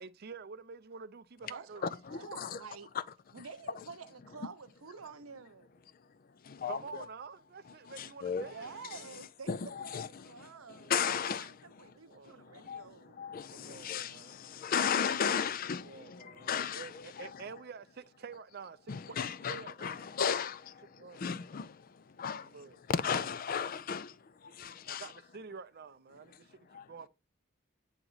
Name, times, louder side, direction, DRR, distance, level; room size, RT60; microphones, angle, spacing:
voice 1, 0.0-1.9 6.7-9.2 11.9-12.7 13.5-14.4 15.8-20.1 21.0-21.6 22.4-22.8 24.9-26.6 26.9-27.1, right 5 dB, 50° right, 0.5 m, -49 dB
voice 2, 1.5-2.9 3.3-5.8 8.4-9.5 9.8-13.2, right 5 dB, 90° right, 0.8 m, -49 dB
voice 3, 2.1-2.6 6.4-7.0 8.0-8.4 9.5-10.1 10.7-11.9 12.4-12.9 13.2-16.9 17.2-17.3 18.9-21.9 22.2-22.5 22.9-24.2 24.4-25.1 26.7-26.9, left 7 dB, 45° left, 0.4 m, -35 dB
8.8 x 3.0 x 4.0 m
head